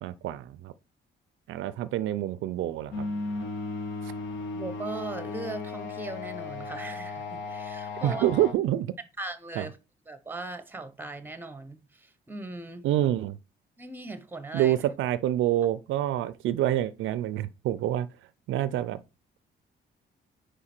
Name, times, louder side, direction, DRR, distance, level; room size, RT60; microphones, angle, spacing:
voice 1, 0.0-0.7 1.5-3.1 4.0-4.1 8.0-8.9 9.6-9.7 12.8-13.4 14.5-18.1 18.5-19.0, right 12 dB, 80° right, 0.4 m, -27 dB
sound 1, 2.9-8.5, left 3 dB, 70° left, 1.5 m, -35 dB
voice 2, 4.5-8.3 9.2-9.8 10.1-12.9 13.8-14.8, right 2 dB, 10° right, 0.9 m, -39 dB
5.0 x 4.9 x 4.3 m
cardioid pair, 90°, 20 cm